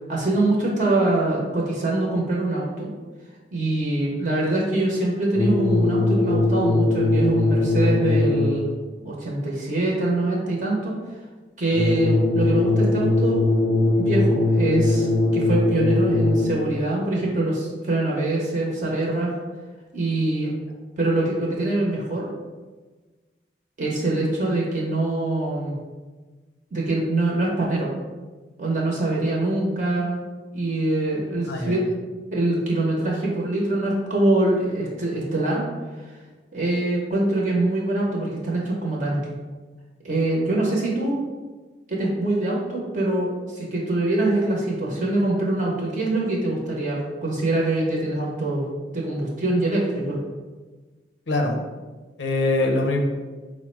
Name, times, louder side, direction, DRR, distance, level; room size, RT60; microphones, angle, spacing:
voice 1, 0.1-2.9 3.5-8.7 9.0-10.9 11.6-13.4 14.0-19.3 19.9-20.5 21.0-22.3 23.8-25.8 26.7-27.9 28.6-30.2 30.5-31.9 32.3-35.6 36.5-39.3 40.0-41.2 41.9-48.6 48.9-50.2, right 2 dB, 45° right, -3 dB, 0.7 m, -24 dB
sound 1, 5.3-8.8 11.7-16.8, left 2 dB, 35° left, 0.3 m, -20 dB
voice 2, 31.5-31.8 51.3-51.6 52.2-53.0, left 2 dB, 90° left, 1 dB, 0.6 m, -23 dB
4.5 x 2.1 x 4.3 m, 1.3 s
head